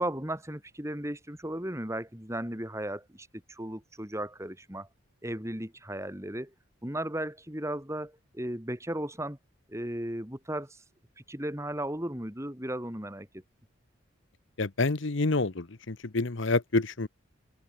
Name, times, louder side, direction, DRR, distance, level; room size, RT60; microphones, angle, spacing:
voice 1, 0.0-4.9 5.2-6.5 6.8-9.4 9.7-10.8 11.2-13.4, right 1 dB, 15° right, 3.2 m, -35 dB
voice 2, 14.6-17.1, left 3 dB, 60° left, 1.0 m, -28 dB
open air
head